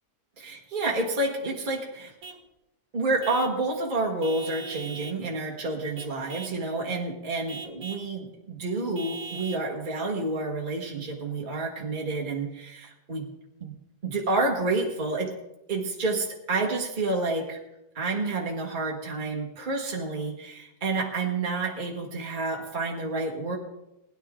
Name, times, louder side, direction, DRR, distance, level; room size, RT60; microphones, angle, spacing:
voice 1, 0.4-2.1 2.9-13.3 13.6-13.7 14.0-15.4 15.7-17.6 18.0-23.6, right 2 dB, 30° right, -1 dB, 1.8 m, -29 dB
Vehicle horn car horn honking / Truck, 2.2-2.5 3.2-3.6 4.2-5.2 6.0-6.6 7.5-8.1 9.0-9.7, right 3 dB, 60° right, 1.6 m, -41 dB
20.5 x 10.5 x 3.7 m, 0.92 s
omnidirectional pair, 1.7 m